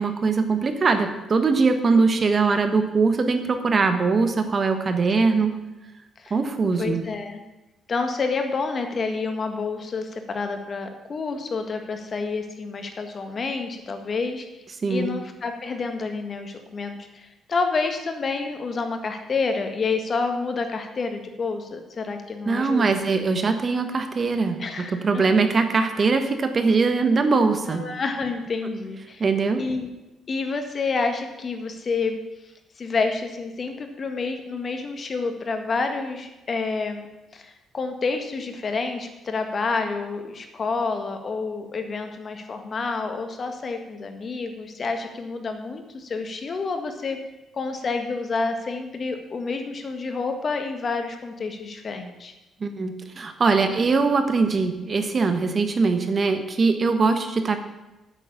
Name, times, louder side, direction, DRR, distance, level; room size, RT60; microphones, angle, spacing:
voice 1, 0.0-5.6 6.3-7.0 14.8-15.1 22.4-24.6 25.0-27.8 29.2-29.6 52.6-57.6, right 4 dB, 40° right, 8 dB, 1.3 m, -21 dB
voice 2, 6.8-7.4 7.9-14.5 14.9-23.0 24.6-25.2 27.7-29.2 29.5-29.9 30.3-32.2 32.8-37.1 37.3-47.2 47.5-52.3, left 4 dB, 45° left, 6 dB, 1.6 m, -29 dB
9.1 x 6.8 x 8.8 m, 1.0 s
cardioid pair, 90°, 0 cm